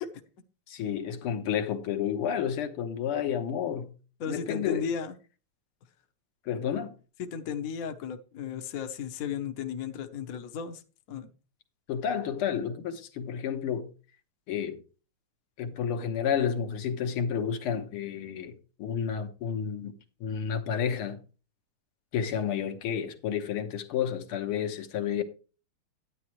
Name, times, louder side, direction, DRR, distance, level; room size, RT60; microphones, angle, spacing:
voice 1, 0.7-3.9 4.3-4.9 6.5-6.9 11.9-13.9 14.5-14.8 15.6-19.9 20.2-21.2 22.1-25.2, left 8 dB, 80° left, 2.0 m, -31 dB
voice 2, 4.2-5.2 7.2-10.8 11.1-11.3, left 7 dB, 55° left, 1.0 m, -35 dB
9.9 x 9.6 x 3.1 m
omnidirectional pair, 2.4 m